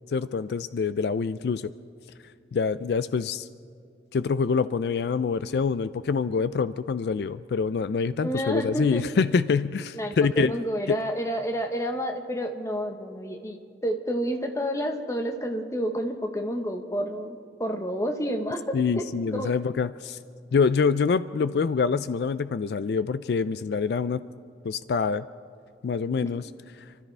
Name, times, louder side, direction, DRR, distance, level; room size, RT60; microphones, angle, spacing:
voice 1, 0.1-1.7 2.5-3.5 4.1-10.5 10.9-11.0 18.7-20.2 20.5-24.2 24.6-25.3 25.8-26.4, left 5 dB, 65° left, 14 dB, 0.3 m, -25 dB
voice 2, 8.2-9.0 9.9-13.6 13.8-19.5, equal, 15° left, 5 dB, 1.1 m, -29 dB
28.5 x 13.0 x 3.3 m, 2.4 s
head